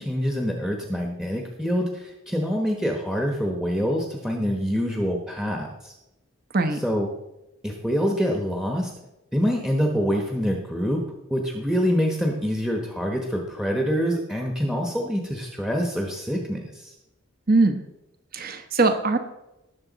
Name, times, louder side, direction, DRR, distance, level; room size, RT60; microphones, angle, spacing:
voice 1, 0.0-5.9 6.7-7.1 7.6-8.9 9.3-11.0 11.3-16.9, equal, ahead, 1 dB, 1.0 m, -25 dB
voice 2, 17.5-17.8 18.3-19.2, right 3 dB, 45° right, 8 dB, 1.1 m, -21 dB
18.5 x 6.9 x 4.0 m, 0.93 s
head